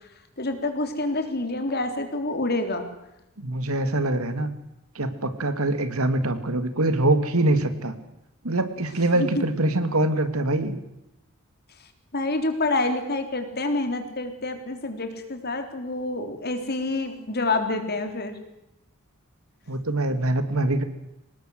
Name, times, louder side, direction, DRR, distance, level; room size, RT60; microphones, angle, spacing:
voice 1, 0.4-2.9 9.1-9.4 12.1-18.3, left 2 dB, 45° left, 7 dB, 3.7 m, -27 dB
voice 2, 3.4-4.5 4.9-7.9 8.4-10.7 19.7-20.8, right 1 dB, 80° right, 10 dB, 2.7 m, -24 dB
25.0 x 19.5 x 8.0 m, 0.89 s
head